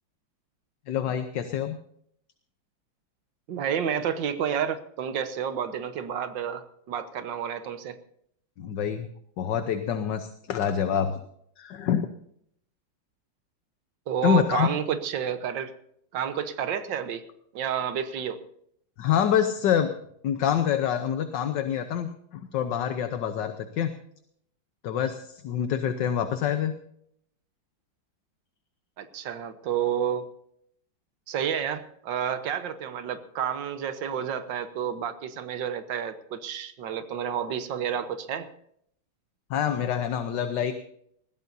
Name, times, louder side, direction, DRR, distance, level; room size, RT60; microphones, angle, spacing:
voice 1, 0.9-1.8 8.6-9.1 9.4-11.2 11.6-12.1 14.2-14.7 19.0-19.9 20.2-23.9 24.8-26.7 39.5-40.7, left 9 dB, 70° left, 8 dB, 1.5 m, -26 dB
voice 2, 3.5-8.0 14.1-15.7 16.1-17.2 17.5-18.4 29.0-30.2 31.3-38.5, right 8 dB, 70° right, 10 dB, 1.8 m, -30 dB
21.0 x 15.5 x 2.7 m, 0.69 s
omnidirectional pair, 2.1 m